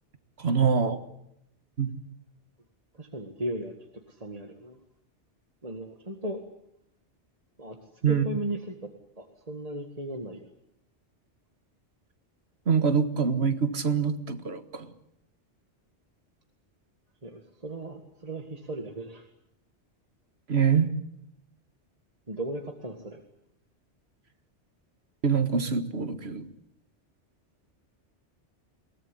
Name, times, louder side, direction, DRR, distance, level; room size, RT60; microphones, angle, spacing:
voice 1, 0.4-1.0 1.8-2.0 8.0-8.2 12.7-14.9 20.5-20.9 25.2-26.5, right 6 dB, 65° right, 10 dB, 1.9 m, -25 dB
voice 2, 2.9-3.7 4.1-4.8 5.6-6.4 7.6-7.8 8.0-8.8 9.2-10.5 17.2-19.3 22.3-23.2, right 1 dB, 35° right, 5 dB, 1.9 m, -36 dB
22.5 x 19.0 x 9.9 m, 0.79 s
omnidirectional pair, 1.2 m